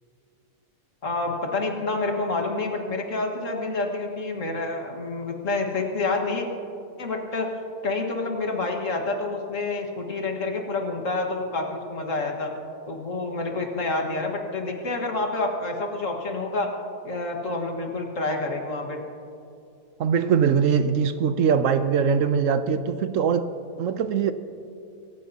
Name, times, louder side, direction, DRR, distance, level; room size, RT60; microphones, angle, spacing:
voice 1, 1.0-6.5 7.0-7.5 7.8-12.5 12.9-16.7 17.0-19.0, left 3 dB, 65° left, 2.0 m, -28 dB
voice 2, 20.0-23.5 23.8-24.3, right 7 dB, 70° right, 1.0 m, -22 dB
26.5 x 15.0 x 2.8 m
omnidirectional pair, 1.5 m